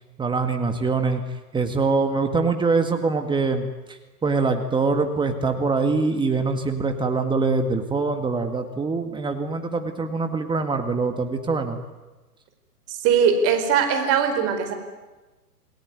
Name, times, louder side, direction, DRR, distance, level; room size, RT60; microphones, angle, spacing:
voice 1, 0.2-1.3 1.5-11.8, right 4 dB, 10° right, 6 dB, 1.9 m, -24 dB
voice 2, 12.9-14.7, right 7 dB, 30° right, 7 dB, 4.6 m, -20 dB
28.0 x 19.5 x 9.5 m, 1.2 s
hypercardioid pair, 130°, 48 cm